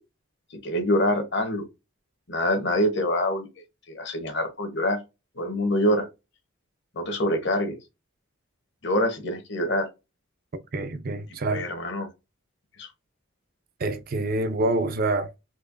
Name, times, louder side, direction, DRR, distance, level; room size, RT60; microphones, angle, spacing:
voice 1, 0.5-1.7 2.3-3.5 3.9-5.0 5.4-6.1 6.9-7.8 8.8-9.9 11.5-12.1 12.8-12.9, left 1 dB, 60° left, 1.1 m, -25 dB
voice 2, 10.7-11.7 13.8-15.3, right 2 dB, 45° right, 0.5 m, -26 dB
4.4 x 2.9 x 2.5 m
head